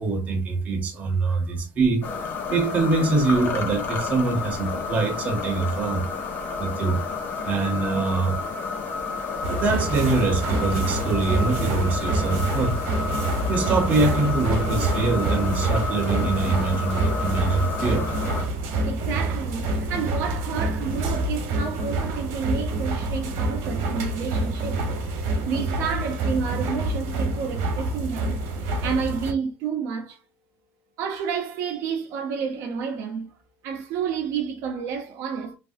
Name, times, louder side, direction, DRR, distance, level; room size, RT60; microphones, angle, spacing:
voice 1, 0.0-2.1 2.5-6.1 6.6-7.0 7.4-8.4 9.4-12.8 13.5-18.1, right 3 dB, 30° right, 0.8 m, -24 dB
sound 1, 2.0-18.4, left 4 dB, 40° left, 0.6 m, -31 dB
sound 2, 9.4-29.3, right 2 dB, 80° right, 1.0 m, -27 dB
voice 2, 18.8-24.8 25.3-28.4 28.8-30.2 31.0-33.3 33.6-35.5, right 6 dB, 65° right, 0.6 m, -30 dB
3.3 x 2.4 x 2.5 m
cardioid pair, 175°, 5 cm